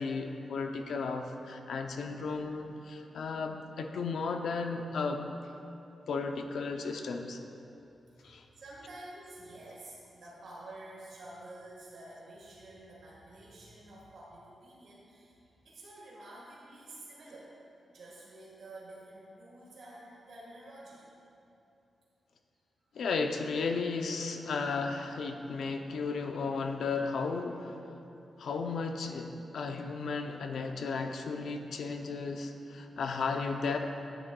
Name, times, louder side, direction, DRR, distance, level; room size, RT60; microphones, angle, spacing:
voice 1, 0.0-5.3 6.1-7.4 8.2-8.4 22.9-27.8 28.4-33.8, left 4 dB, 75° left, 5 dB, 0.6 m, -34 dB
voice 2, 8.1-15.4 15.6-17.6 17.9-21.0, right 1 dB, 70° right, -6 dB, 1.6 m, -49 dB
9.8 x 9.4 x 2.3 m, 2.8 s
wide cardioid pair, 130°, 0 cm